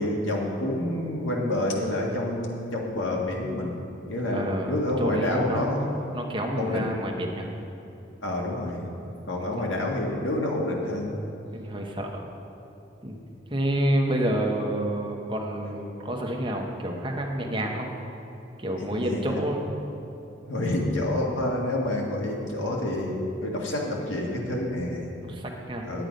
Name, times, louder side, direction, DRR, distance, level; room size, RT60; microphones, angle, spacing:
voice 1, 0.0-3.7 4.1-5.8 6.6-7.0 8.2-8.9 9.3-11.2 18.8-19.4 20.4-25.1 25.9-26.0, left 1 dB, 90° left, -1 dB, 1.7 m, -28 dB
voice 2, 4.3-7.5 9.3-9.8 11.5-12.3 13.0-13.2 13.5-17.9 18.6-19.7 25.2-26.0, right 1 dB, 25° right, 1 dB, 1.0 m, -29 dB
9.8 x 8.8 x 5.2 m, 2.9 s
head